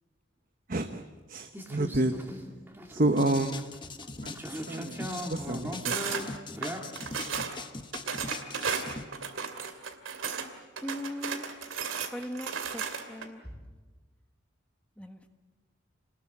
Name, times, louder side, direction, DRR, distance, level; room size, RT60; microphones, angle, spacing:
voice 1, 0.7-1.0 1.3-2.1 2.9-3.7 4.2-6.2, right 2 dB, 45° right, 7 dB, 1.0 m, -29 dB
sound 1, 1.5-6.8, equal, 10° right, 2.6 m, -39 dB
sound 2, 3.2-9.0, left 3 dB, 25° left, 1.3 m, -41 dB
sound 3, 5.8-6.2 6.6-7.6 7.9-10.5 10.8-13.3, right 6 dB, 85° right, 2.6 m, -34 dB
voice 2, 10.8-11.5 12.1-13.6 15.0-15.3, equal, 5° left, 6 dB, 1.4 m, -39 dB
28.5 x 20.0 x 8.8 m, 1.3 s
head